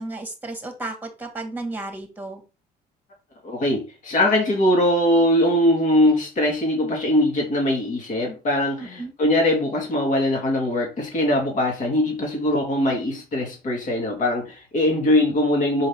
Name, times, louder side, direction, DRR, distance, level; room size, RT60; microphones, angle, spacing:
voice 1, 0.0-2.4 8.8-9.1, right 2 dB, 10° right, 5 dB, 2.0 m, -33 dB
voice 2, 3.4-15.9, left 1 dB, 50° left, 0 dB, 2.8 m, -21 dB
5.5 x 5.3 x 3.7 m, 0.31 s
cardioid pair, 110°, 17 cm